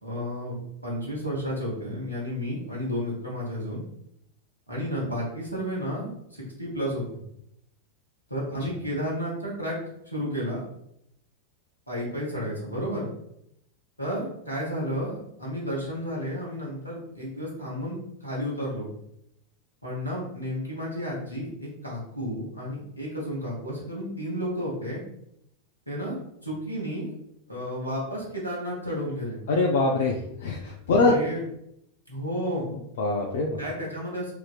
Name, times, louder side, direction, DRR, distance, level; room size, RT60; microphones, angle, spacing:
voice 1, 0.0-3.8 4.7-7.0 8.3-9.8 10.1-10.7 11.9-13.1 14.0-18.9 19.8-25.0 25.9-26.2 26.4-27.1 27.5-29.4 30.9-31.4 32.1-32.7 33.6-34.3, equal, 85° left, -4 dB, 0.9 m, -32 dB
voice 2, 29.5-31.1 32.7-33.6, left 3 dB, 60° left, 0 dB, 0.4 m, -24 dB
2.9 x 2.6 x 2.3 m, 0.76 s
figure-of-eight pair, 90°, 0 cm